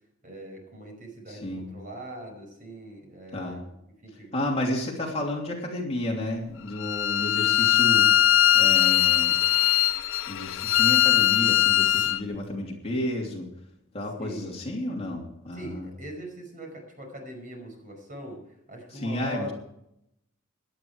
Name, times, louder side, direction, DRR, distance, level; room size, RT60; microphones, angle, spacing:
voice 1, 0.2-3.7 4.0-4.3 12.0-12.1 14.2-14.5 15.5-19.5, equal, 40° right, 3 dB, 5.3 m, -41 dB
voice 2, 1.3-1.7 3.3-3.6 4.3-8.1 8.5-9.4 10.3-13.5 13.9-15.9 18.9-19.5, left 1 dB, 30° left, -1 dB, 3.0 m, -31 dB
Bowed string instrument, 6.8-12.2, left 12 dB, 65° left, 0.5 m, -21 dB
17.0 x 11.5 x 4.8 m, 0.79 s
head